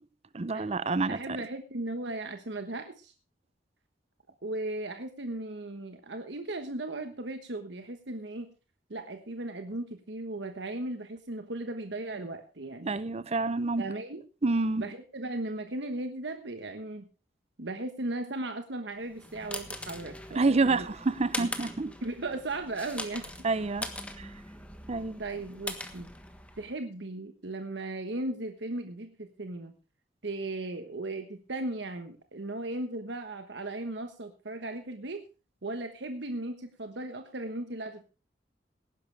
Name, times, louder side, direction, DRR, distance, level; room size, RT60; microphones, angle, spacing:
voice 1, 0.3-1.4 12.8-13.9 14.4-14.8 20.3-21.9 23.4-23.9 24.2-24.3 24.9-25.2, right 3 dB, 35° right, 0.6 m, -28 dB
voice 2, 1.1-3.1 4.4-8.5 8.9-12.9 13.8-14.2 14.8-17.1 17.6-20.9 21.4-21.5 22.0-23.2 25.2-26.1 26.6-29.7 30.2-35.2 35.6-38.0, right 2 dB, 70° right, 1.3 m, -37 dB
sound 1, 19.0-26.8, left 1 dB, 5° left, 1.4 m, -41 dB
18.5 x 10.5 x 3.4 m
head